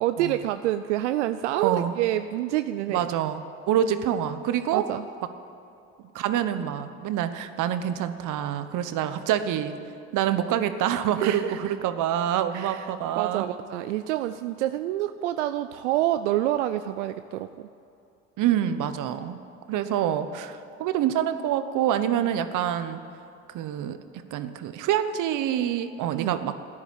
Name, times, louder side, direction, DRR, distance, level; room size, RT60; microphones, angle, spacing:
voice 1, 0.0-3.0 4.7-5.1 11.2-11.7 12.5-17.7 26.1-26.5, right 13 dB, 90° right, 10 dB, 0.5 m, -28 dB
voice 2, 1.5-1.9 2.9-3.4 3.7-4.8 6.1-9.8 10.1-13.5 18.4-19.4 19.7-23.0 23.5-24.0 24.3-26.6, right 10 dB, 60° right, 10 dB, 1.2 m, -26 dB
13.5 x 10.0 x 10.0 m, 2.7 s
hypercardioid pair, 70°, 34 cm